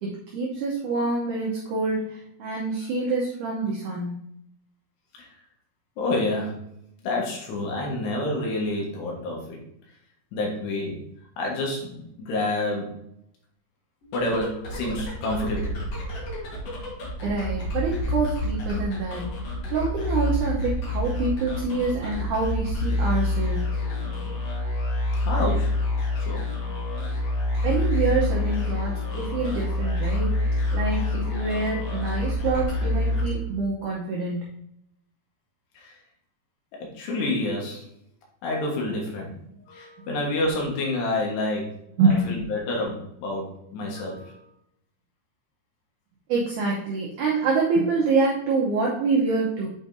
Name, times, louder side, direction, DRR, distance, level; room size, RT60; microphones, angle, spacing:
voice 1, 0.0-4.2 17.2-19.3 19.7-23.6 27.6-30.3 30.7-34.5 40.0-40.1 42.0-42.3 46.3-49.7, right 3 dB, 75° right, -3 dB, 1.9 m, -26 dB
voice 2, 6.0-6.6 7.0-9.6 10.3-11.0 11.4-12.9 14.1-15.7 25.3-25.8 26.3-26.4 35.8-35.9 36.8-37.8 38.4-39.3 39.7-41.8 42.1-44.4, left 2 dB, 80° left, -1 dB, 3.6 m, -28 dB
sound 1, 14.0-33.8, left 2 dB, 55° left, 2.0 m, -27 dB
8.3 x 5.0 x 2.7 m, 0.75 s
omnidirectional pair, 4.7 m